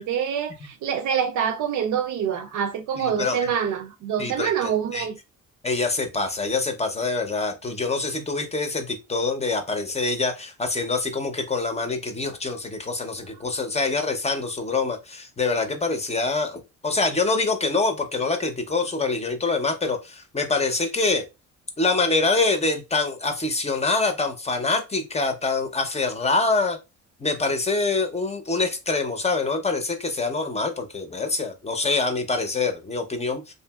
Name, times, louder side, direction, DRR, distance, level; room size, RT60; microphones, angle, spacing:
voice 1, 0.0-5.2, right 8 dB, 75° right, 0.5 m, -26 dB
voice 2, 3.0-3.5 4.2-5.1 5.6-21.3 21.8-26.8 27.2-33.5, left 3 dB, 20° left, 0.6 m, -25 dB
2.7 x 2.6 x 2.3 m
cardioid pair, 90°, 30 cm